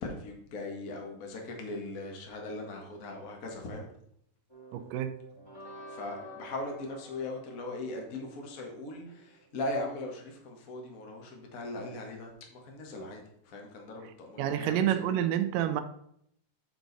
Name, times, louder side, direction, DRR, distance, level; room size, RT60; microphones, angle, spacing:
voice 1, 0.0-3.9 5.9-14.9, left 2 dB, 85° left, 1 dB, 0.7 m, -39 dB
sound 1, 4.5-9.5, equal, 10° left, 1.8 m, -50 dB
voice 2, 4.7-5.1 14.4-15.8, right 11 dB, 80° right, 8 dB, 2.2 m, -28 dB
9.4 x 4.8 x 4.0 m, 0.70 s
omnidirectional pair, 4.0 m